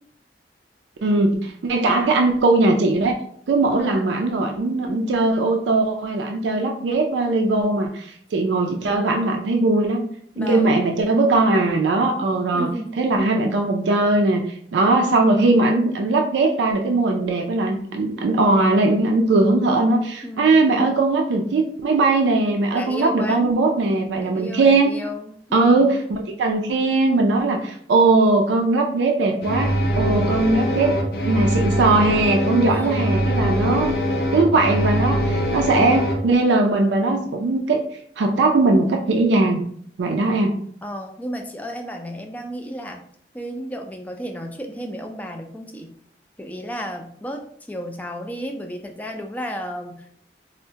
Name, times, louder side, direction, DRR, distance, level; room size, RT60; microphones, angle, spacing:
voice 1, 1.0-3.1 3.5-10.1 10.4-12.7 13.0-24.9 25.5-33.9 34.3-37.8 38.2-39.6 40.0-40.6, right 2 dB, 90° right, 3 dB, 0.4 m, -19 dB
voice 2, 10.4-10.8 12.5-12.9 20.0-20.6 22.7-23.5 24.2-26.0 32.6-33.1 40.8-43.0 43.3-45.9 46.4-47.4 47.7-50.1, equal, 10° left, 3 dB, 0.3 m, -33 dB
sound 1, 29.4-36.1, equal, 60° left, 0.6 m, -22 dB
4.4 x 2.1 x 2.7 m, 0.62 s
head